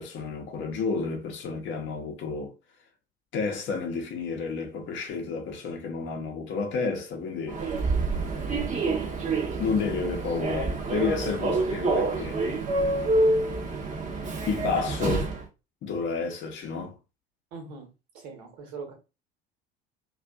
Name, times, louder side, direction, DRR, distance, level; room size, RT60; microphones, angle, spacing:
voice 1, 0.0-2.5 3.3-7.6 9.6-12.4 14.5-15.3 15.8-17.0, left 4 dB, 40° left, 0.7 m, -31 dB
Human voice / Subway metro underground, 7.5-15.4, right 2 dB, 25° right, 0.7 m, -27 dB
voice 2, 17.5-18.9, right 4 dB, 60° right, 1.1 m, -42 dB
2.5 x 2.4 x 2.3 m
figure-of-eight pair, 60°, 31 cm